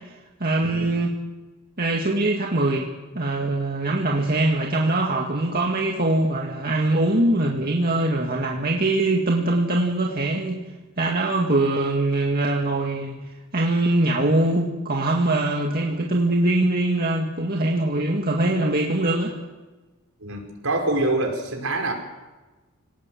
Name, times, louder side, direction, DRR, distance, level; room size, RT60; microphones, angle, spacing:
voice 1, 0.4-1.1 1.8-2.9 3.1-10.6 11.0-13.1 13.5-19.4, right 2 dB, 45° right, -1 dB, 2.0 m, -22 dB
voice 2, 20.2-21.9, right 2 dB, 70° right, 2 dB, 4.9 m, -25 dB
25.0 x 19.0 x 7.6 m, 1.2 s
head